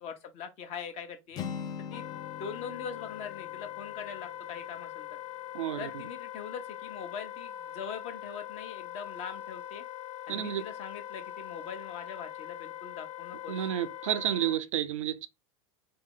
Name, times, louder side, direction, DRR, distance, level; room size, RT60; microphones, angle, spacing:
voice 1, 0.0-1.4 1.9-5.1 5.8-9.8 10.3-13.7, left 6 dB, 45° left, 0.9 m, -42 dB
Acoustic guitar, 1.3-5.3, left 7 dB, 25° left, 0.4 m, -43 dB
Wind instrument woodwind instrument, 1.9-14.6, left 12 dB, 75° left, 0.7 m, -42 dB
voice 2, 5.5-5.9 10.3-10.6 13.5-15.3, right 11 dB, 85° right, 0.4 m, -30 dB
2.7 x 2.1 x 3.7 m
hypercardioid pair, 110°, 16 cm